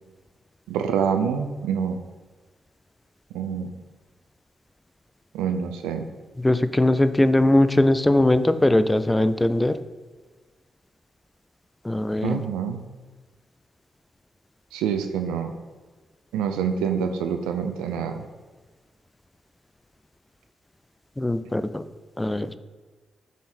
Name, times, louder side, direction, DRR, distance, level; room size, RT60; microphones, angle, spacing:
voice 1, 0.7-2.0 3.3-3.7 5.3-6.1 12.2-12.8 14.7-15.5 16.3-18.2, right 7 dB, 85° right, 7 dB, 0.5 m, -26 dB
voice 2, 6.4-9.7 11.8-12.4 21.2-21.8 22.2-22.5, left 1 dB, 15° left, 12 dB, 0.5 m, -20 dB
7.2 x 3.7 x 4.3 m, 1.3 s
hypercardioid pair, 45°, 0 cm